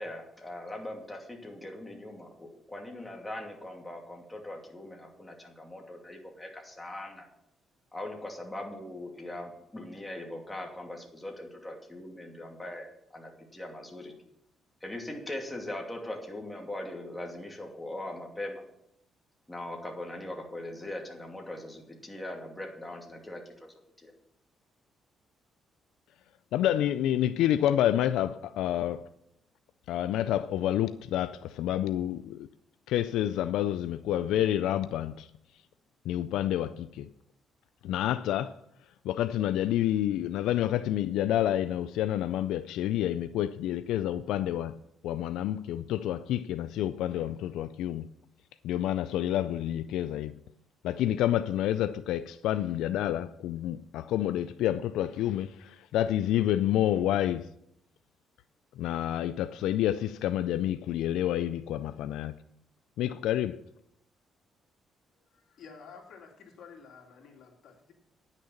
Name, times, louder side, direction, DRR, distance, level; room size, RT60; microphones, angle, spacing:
voice 1, 0.0-7.2 7.9-14.1 14.8-18.6 19.5-24.1, left 1 dB, 10° left, 2.6 m, -41 dB
voice 2, 26.5-29.1 29.9-32.5 32.9-35.3 36.1-37.1 37.8-38.6 39.0-44.8 45.0-48.1 48.6-50.3 50.8-57.5 58.8-62.3 63.0-63.6, left 12 dB, 90° left, 0.3 m, -28 dB
voice 3, 65.1-67.9, left 5 dB, 70° left, 2.6 m, -51 dB
9.8 x 6.6 x 7.1 m
cardioid pair, 90°, 0 cm